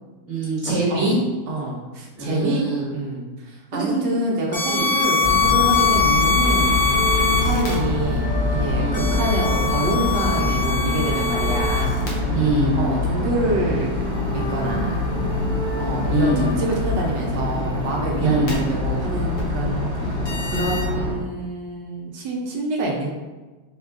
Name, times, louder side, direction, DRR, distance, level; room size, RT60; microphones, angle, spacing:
voice 1, 0.2-1.2 2.2-2.9 3.7-4.0 4.6-4.9 8.7-9.1 12.3-12.8 16.1-16.4 18.2-18.5, right 2 dB, 20° left, -10 dB, 1.0 m, -23 dB
voice 2, 1.5-6.8 7.4-12.3 12.8-14.0 14.3-15.0 15.8-23.1, right 2 dB, 70° right, -1 dB, 1.1 m, -27 dB
sound 1, 4.5-7.8 8.9-12.1 18.5-18.6 19.4-19.5 20.3-20.8, left 6 dB, 60° left, 1.3 m, -22 dB
sound 2, 5.2-21.1, left 2 dB, 40° right, 0.8 m, -24 dB
sound 3, 6.4-16.5, right 2 dB, 75° left, 1.8 m, -34 dB
4.3 x 2.3 x 3.5 m, 1.2 s
omnidirectional pair, 2.3 m